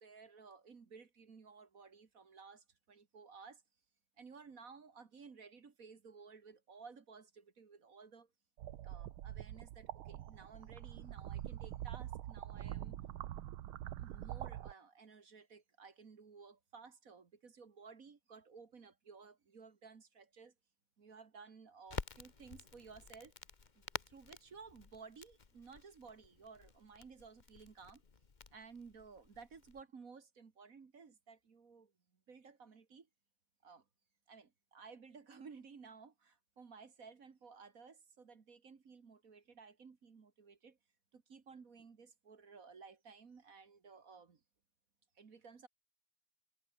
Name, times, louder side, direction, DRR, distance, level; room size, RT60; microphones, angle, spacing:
voice 1, 0.0-3.6 4.2-8.3 8.8-13.0 14.0-20.5 21.0-23.3 23.8-28.0 28.5-31.9 32.3-33.1 33.6-33.8 34.3-40.8 41.1-44.4 45.2-45.7, right 5 dB, 40° right, 2.0 m, -56 dB
sound 1, 8.6-14.7, right 13 dB, 75° right, 1.7 m, -45 dB
Crackle, 21.9-29.8, left 4 dB, 30° left, 0.9 m, -50 dB
omnidirectional pair, 2.4 m